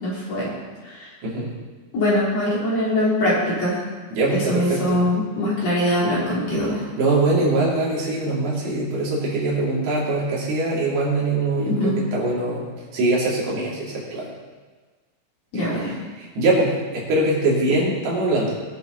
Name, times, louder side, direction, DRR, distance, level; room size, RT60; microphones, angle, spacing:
voice 1, 0.0-0.5 0.8-1.1 1.9-3.8 4.5-6.8 11.6-12.0 15.5-15.9, left 1 dB, 45° left, -7 dB, 4.1 m, -22 dB
voice 2, 4.1-5.0 6.6-12.7 12.9-14.3 15.5-18.6, right 2 dB, 75° right, -6 dB, 5.0 m, -23 dB
21.0 x 7.5 x 4.0 m, 1.4 s
omnidirectional pair, 4.5 m